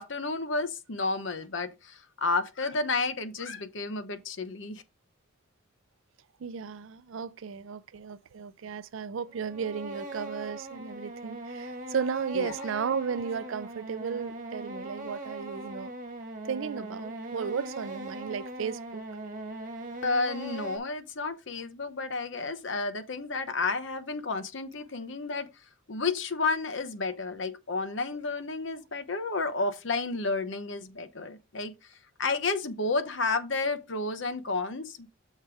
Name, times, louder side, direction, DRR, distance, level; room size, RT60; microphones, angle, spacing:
voice 1, 0.0-4.8 12.3-12.5 20.0-25.5 25.9-31.7 32.2-35.1, left 3 dB, 60° left, 0.8 m, -31 dB
voice 2, 6.4-15.9 16.4-19.0, right 6 dB, 70° right, 0.4 m, -34 dB
sound 1, 9.3-20.8, right 2 dB, 40° right, 1.7 m, -40 dB
6.5 x 4.6 x 4.8 m
head